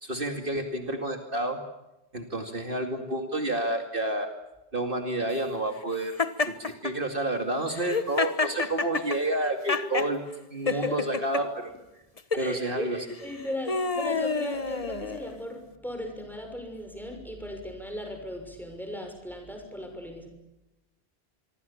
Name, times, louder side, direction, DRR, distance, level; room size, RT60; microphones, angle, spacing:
voice 1, 0.0-1.6 2.1-4.3 4.7-6.1 6.5-10.2 10.5-11.7 12.4-13.1, right 1 dB, 55° right, 5 dB, 2.6 m, -29 dB
Laughter, 6.2-6.9 7.7-10.1 10.7-11.4 12.2-12.5 13.2-15.4, left 4 dB, 35° left, 1.3 m, -29 dB
voice 2, 10.6-11.0 12.3-12.9 13.2-20.3, left 1 dB, ahead, 4 dB, 6.4 m, -37 dB
26.0 x 24.5 x 7.2 m, 0.97 s
omnidirectional pair, 1.1 m